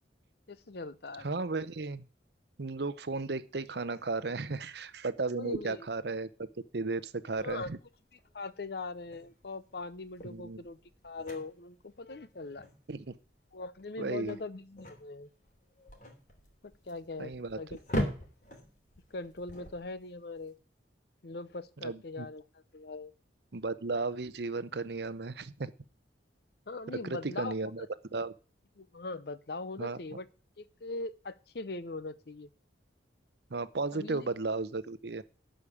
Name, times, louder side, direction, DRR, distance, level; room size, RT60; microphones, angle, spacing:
voice 1, 0.5-1.3 5.4-5.9 7.4-7.7 8.3-10.8 11.0-12.7 13.5-15.3 16.6-17.3 17.6-17.8 19.1-20.5 21.2-22.5 22.7-23.1 26.7-27.9 28.8-30.3 30.6-32.5 33.9-34.3, left 3 dB, 60° left, 16 dB, 0.7 m, -41 dB
voice 2, 1.2-2.0 2.6-6.5 6.7-7.8 10.2-10.6 12.9-13.2 14.0-14.4 17.2-17.6 21.8-22.3 23.5-25.7 27.0-27.9 28.1-28.3 29.8-30.0 33.5-35.2, right 3 dB, 60° right, 15 dB, 0.7 m, -34 dB
sound 1, 7.3-20.5, equal, 40° left, 2.9 m, -42 dB
12.0 x 5.1 x 8.6 m, 0.38 s
head